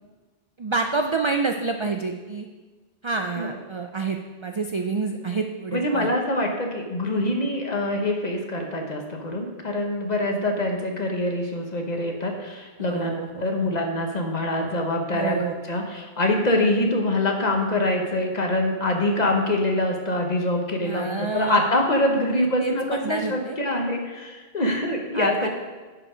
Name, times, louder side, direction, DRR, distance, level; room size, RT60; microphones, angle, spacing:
voice 1, 0.6-2.5 3.0-6.1 12.9-13.5 14.5-14.7 15.1-15.5 20.8-21.6 22.3-22.7 23.0-23.6 24.7-24.8 25.1-25.5, right 4 dB, 55° right, 4 dB, 0.3 m, -28 dB
voice 2, 5.7-25.5, left 1 dB, 40° left, 2 dB, 1.2 m, -25 dB
10.5 x 5.0 x 5.0 m, 1.3 s
omnidirectional pair, 1.1 m